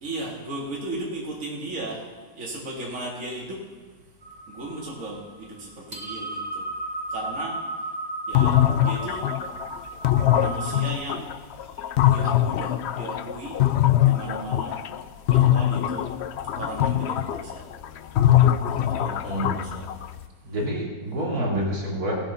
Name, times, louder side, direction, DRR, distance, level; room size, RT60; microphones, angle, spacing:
voice 1, 0.0-2.0 2.4-3.6 4.5-6.6 7.1-7.6 8.3-9.2 10.4-11.3 12.1-13.6 14.1-14.8 15.3-16.1 16.5-17.6 18.7-19.8, right 2 dB, 55° right, -4 dB, 2.5 m, -36 dB
sound 1, 4.2-10.9, right 2 dB, 25° right, 1.6 m, -35 dB
sound 2, 8.3-15.0 15.3-20.2, left 12 dB, 80° left, 0.6 m, -22 dB
voice 2, 19.2-19.6 20.4-22.1, equal, 70° right, -2 dB, 2.9 m, -28 dB
17.0 x 8.9 x 5.6 m, 1.4 s
omnidirectional pair, 1.7 m